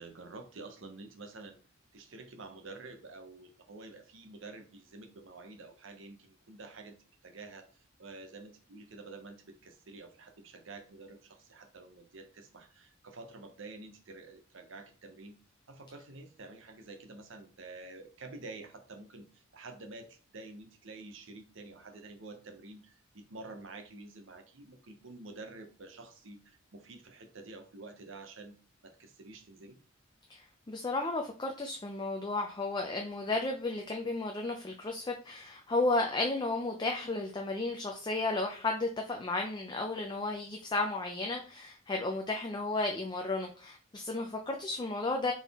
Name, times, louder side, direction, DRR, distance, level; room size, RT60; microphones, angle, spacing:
voice 1, 0.0-1.6 1.9-7.0 7.2-15.4 15.7-28.5 28.8-29.8, right 3 dB, 70° right, 6 dB, 0.8 m, -49 dB
voice 2, 30.3-45.3, left 2 dB, 20° left, 3 dB, 0.4 m, -33 dB
4.1 x 3.6 x 3.5 m, 0.40 s
head